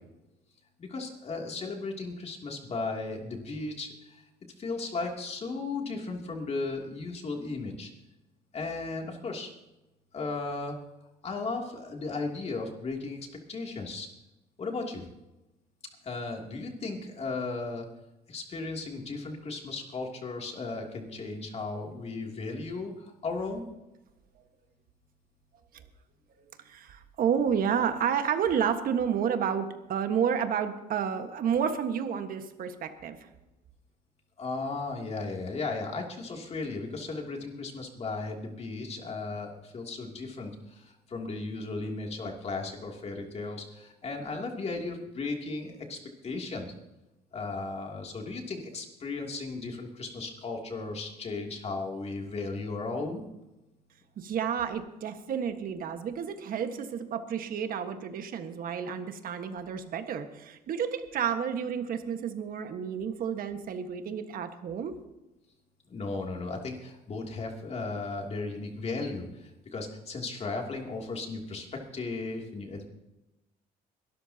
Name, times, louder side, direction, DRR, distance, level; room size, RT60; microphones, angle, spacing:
voice 1, 0.8-4.2 4.6-7.9 8.5-9.5 10.1-10.8 11.2-13.2 13.5-14.1 14.6-15.1 16.0-17.8 18.3-23.6 34.4-46.7 47.3-53.2 65.9-72.8, left 3 dB, 40° left, 1 dB, 2.9 m, -35 dB
voice 2, 26.6-33.2 54.2-64.9, right 7 dB, 60° right, 7 dB, 1.6 m, -30 dB
23.0 x 13.0 x 2.9 m, 0.97 s
cardioid pair, 110°, 17 cm